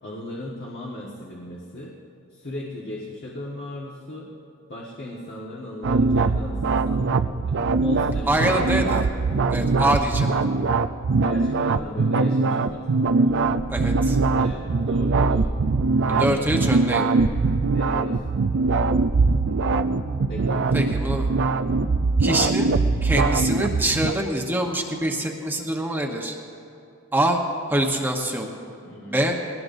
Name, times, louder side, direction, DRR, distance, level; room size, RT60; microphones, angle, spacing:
voice 1, 0.0-2.0 2.3-4.3 4.7-8.9 11.2-13.4 14.4-15.5 16.0-16.5 17.7-18.3 20.3-20.9 28.8-29.2, left 1 dB, 50° left, -4 dB, 1.5 m, -37 dB
sound 1, 5.8-24.1, right 3 dB, 60° right, 0.5 m, -22 dB
voice 2, 8.3-9.1 9.5-10.4 13.7-14.2 16.2-17.1 20.7-21.3 22.2-22.7 23.0-26.3 27.1-27.4 27.7-28.5 29.1-29.3, right 1 dB, 10° right, 0 dB, 1.0 m, -24 dB
21.5 x 18.0 x 2.6 m, 2.6 s
head